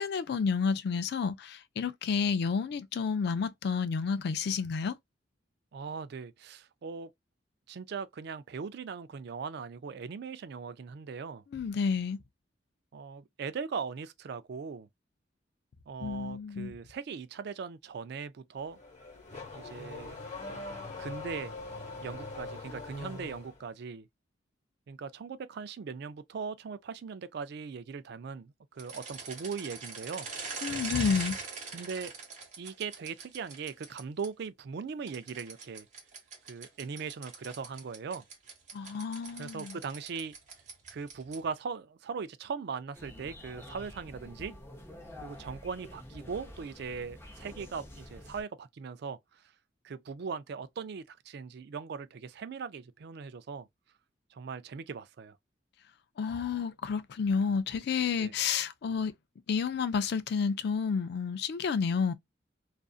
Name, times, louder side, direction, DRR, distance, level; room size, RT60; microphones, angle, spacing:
voice 1, 0.0-5.0 11.5-12.2 16.0-16.7 30.6-31.4 38.7-39.8 56.2-59.1 59.5-62.1, left 5 dB, 60° left, 0.4 m, -30 dB
voice 2, 5.7-7.1 7.7-11.4 12.9-14.9 15.9-18.8 19.5-20.2 21.0-21.5 22.0-24.1 24.9-30.3 31.7-32.1 32.6-35.9 36.5-38.2 39.4-40.3 40.9-44.5 45.2-49.4 49.8-53.7 54.3-55.4 58.2-58.3, right 5 dB, 60° right, 0.4 m, -39 dB
Car / Accelerating revving vroom, 18.6-23.6, left 3 dB, 40° left, 1.1 m, -42 dB
sound 1, 28.8-34.3 35.1-41.5, right 4 dB, 40° right, 1.1 m, -42 dB
sound 2, 42.9-48.4, left 1 dB, 15° left, 0.7 m, -48 dB
2.5 x 2.5 x 2.3 m
head